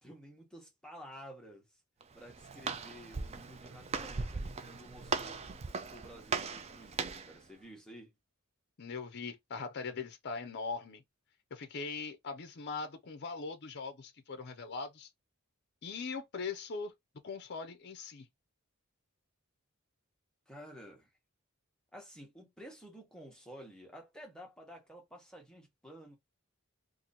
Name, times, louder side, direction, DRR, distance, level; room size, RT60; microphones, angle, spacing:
voice 1, 0.0-1.6 2.1-5.4 5.9-8.1 20.5-21.1 21.9-26.2, equal, 5° left, 1.1 m, -52 dB
Walk footsteps, 2.0-7.4, right 4 dB, 30° right, 0.4 m, -38 dB
voice 2, 8.8-11.0 11.5-15.1 15.8-16.9 17.2-18.3, left 4 dB, 50° left, 0.5 m, -41 dB
2.9 x 2.5 x 3.9 m
head